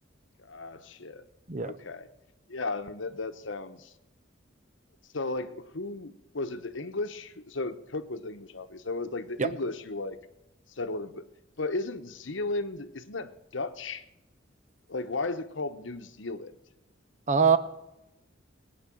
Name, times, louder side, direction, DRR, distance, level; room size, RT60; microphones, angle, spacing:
voice 1, 0.4-1.3 1.6-2.1 2.5-3.9 5.1-10.2 10.8-11.2 11.6-14.0 14.9-16.5, left 3 dB, 75° left, 11 dB, 1.1 m, -35 dB
voice 2, 1.5-1.7 9.4-9.5 17.3-17.6, right 6 dB, 40° right, 13 dB, 0.9 m, -22 dB
19.0 x 9.6 x 7.7 m, 0.93 s
head